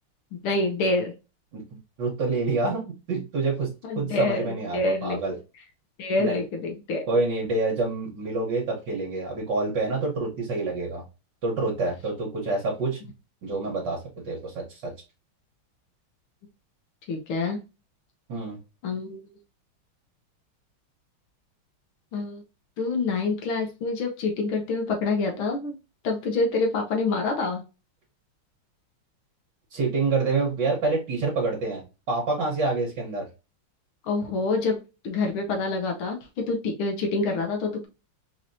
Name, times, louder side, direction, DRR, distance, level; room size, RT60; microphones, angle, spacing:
voice 1, 0.3-1.1 3.8-5.2 6.0-7.0 17.1-17.6 18.8-19.3 22.1-22.4 22.8-25.7 26.0-27.6 34.0-34.8 35.0-37.9, left 3 dB, 80° left, 2 dB, 1.8 m, -27 dB
voice 2, 2.0-5.3 6.2-6.4 7.1-11.0 11.4-13.0 13.4-14.0 14.3-14.9 18.3-18.6 29.7-31.8 32.1-33.3, right 3 dB, 60° right, -2 dB, 1.7 m, -27 dB
4.5 x 2.9 x 2.6 m, 0.28 s
omnidirectional pair, 2.3 m